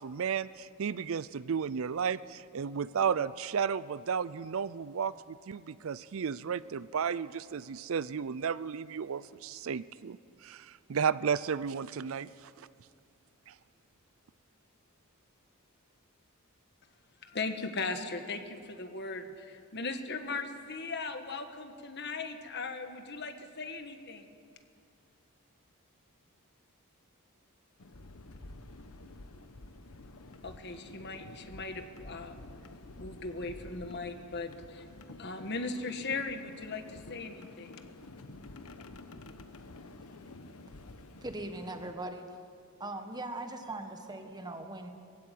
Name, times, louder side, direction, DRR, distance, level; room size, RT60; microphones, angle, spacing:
voice 1, 0.0-12.7 13.5-13.6, right 6 dB, 65° right, 17 dB, 0.4 m, -33 dB
voice 2, 17.2-24.3 30.4-32.4 33.0-34.9 35.2-37.8, left 3 dB, 50° left, 7 dB, 1.5 m, -38 dB
sound 1, 27.8-41.9, left 2 dB, 85° left, 1.2 m, -50 dB
voice 3, 41.2-42.4 42.8-44.9, right 2 dB, 20° right, 6 dB, 1.5 m, -40 dB
21.0 x 16.0 x 9.4 m, 2.3 s
head